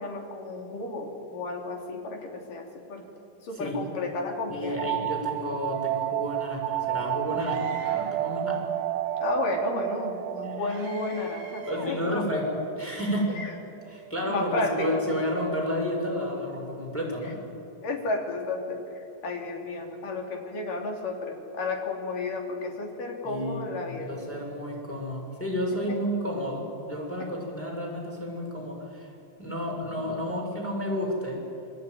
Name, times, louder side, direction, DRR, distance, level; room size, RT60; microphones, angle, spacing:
voice 1, 0.0-3.1 3.4-4.8 9.2-12.3 13.3-13.5 14.3-14.9 17.2-17.3 17.8-24.1 30.0-30.5, left 3 dB, 70° left, 2 dB, 4.8 m, -32 dB
voice 2, 4.5-8.6 11.7-12.4 12.8-13.3 13.9-17.3 23.2-23.6 24.1-29.1 29.4-31.4, equal, 5° left, -2 dB, 6.3 m, -31 dB
sound 1, 4.8-14.2, right 14 dB, 75° right, 2.1 m, -32 dB
Screaming, 7.4-8.3 10.7-12.0, right 2 dB, 55° right, 5.2 m, -46 dB
29.0 x 21.5 x 9.5 m, 2.8 s
omnidirectional pair, 3.9 m